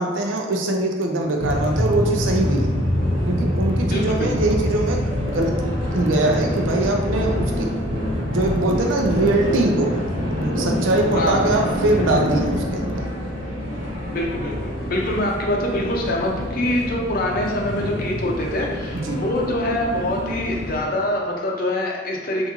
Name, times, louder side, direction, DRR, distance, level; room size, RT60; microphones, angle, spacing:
voice 1, 0.0-2.7 3.3-5.6 5.9-7.7 8.3-10.0 10.3-13.1 18.9-19.2, right 2 dB, 90° right, 2 dB, 0.5 m, -22 dB
sound 1, 1.2-20.9, left 1 dB, 15° right, 0.8 m, -40 dB
sound 2, 1.4-20.8, equal, 75° right, 1.3 m, -26 dB
voice 2, 3.9-4.3 11.1-11.7 13.6-22.5, left 1 dB, 50° left, -1 dB, 0.6 m, -25 dB
3.5 x 2.5 x 2.9 m, 1.4 s
head